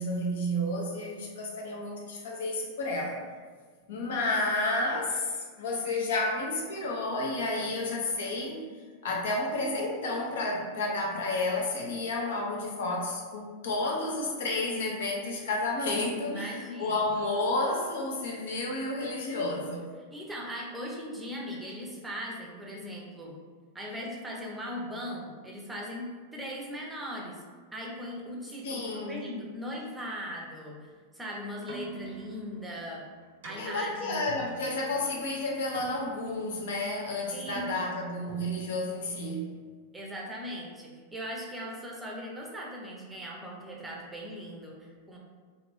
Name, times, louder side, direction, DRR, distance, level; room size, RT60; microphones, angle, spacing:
voice 1, 0.0-3.2 3.9-8.6 9.0-19.9 28.6-29.2 33.6-39.5, left 2 dB, 60° left, -1 dB, 0.6 m, -31 dB
voice 2, 16.3-17.0 20.1-23.4 23.7-27.4 27.7-33.0 33.4-34.2 37.3-37.7 39.9-45.2, equal, 10° right, -3 dB, 0.6 m, -39 dB
Keyboard (musical), 31.5-39.7, right 5 dB, 60° right, 0.5 m, -47 dB
2.5 x 2.5 x 3.3 m, 1.5 s
figure-of-eight pair, 90°, 0 cm